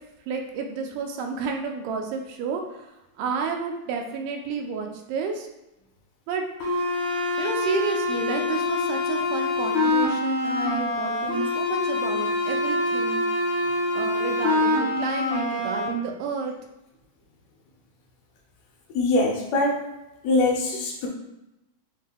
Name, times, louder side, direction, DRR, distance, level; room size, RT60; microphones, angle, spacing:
voice 1, 0.3-2.9 3.2-5.5 6.3-6.5 7.4-13.2 13.9-16.5, right 5 dB, 85° right, 3 dB, 2.2 m, -31 dB
sound 1, 6.6-15.9, left 2 dB, 55° left, 1.6 m, -25 dB
voice 2, 19.0-19.8 20.2-21.1, left 2 dB, 75° left, 0 dB, 2.2 m, -22 dB
7.3 x 2.8 x 2.2 m, 0.92 s
omnidirectional pair, 3.7 m